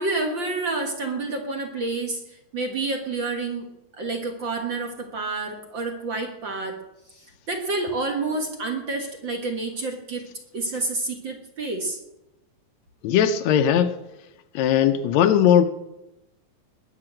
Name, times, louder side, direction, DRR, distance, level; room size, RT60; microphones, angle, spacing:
voice 1, 0.0-2.2 2.5-6.8 7.5-10.3 10.5-12.0, right 3 dB, 45° right, 3 dB, 1.6 m, -29 dB
voice 2, 13.0-14.0 14.5-15.6, left 9 dB, 85° left, 7 dB, 1.5 m, -18 dB
20.0 x 6.7 x 8.8 m, 0.94 s
omnidirectional pair, 4.1 m